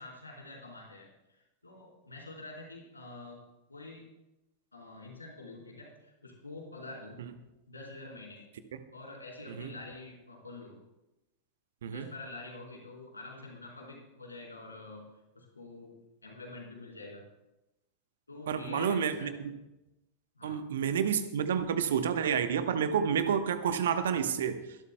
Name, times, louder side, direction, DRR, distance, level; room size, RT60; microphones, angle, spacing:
voice 1, 0.0-3.4 3.7-4.0 4.7-7.2 7.7-8.4 8.9-10.8 11.9-15.0 15.3-15.9 16.2-17.2 18.3-19.4 20.4-20.6, left 2 dB, 80° left, -2 dB, 4.0 m, -46 dB
voice 2, 18.5-19.5 20.4-24.6, right 7 dB, 60° right, 10 dB, 1.0 m, -29 dB
24.0 x 12.5 x 2.2 m, 0.96 s
figure-of-eight pair, 90°, 0 cm